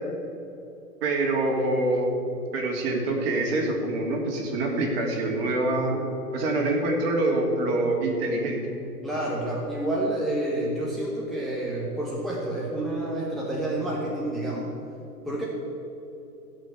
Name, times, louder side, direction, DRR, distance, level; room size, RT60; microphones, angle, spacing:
voice 1, 1.0-2.2 2.5-6.0 6.3-8.6, right 2 dB, 40° right, 0 dB, 2.7 m, -25 dB
voice 2, 9.0-14.7 15.3-15.5, right 1 dB, ahead, -5 dB, 1.1 m, -29 dB
16.0 x 5.6 x 8.2 m, 2.9 s
figure-of-eight pair, 120°, 48 cm